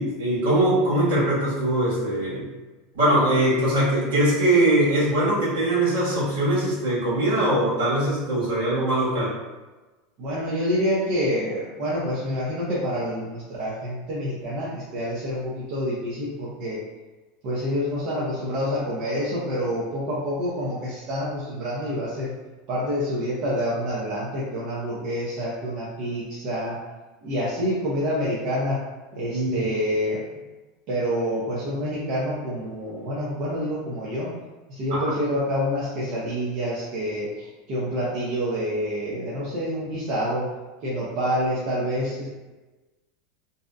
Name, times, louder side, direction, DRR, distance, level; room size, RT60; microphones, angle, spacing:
voice 1, 0.0-2.4 2.9-9.3 29.3-29.6 34.9-35.1, right 1 dB, 80° right, -8 dB, 1.3 m, -22 dB
voice 2, 10.2-16.8 17.4-22.3 22.7-26.8 27.2-28.8 29.1-30.2 30.9-34.3 34.7-40.5 40.8-42.3, equal, 55° right, -7 dB, 0.6 m, -27 dB
2.6 x 2.1 x 2.5 m, 1.2 s
hypercardioid pair, 100°, 0 cm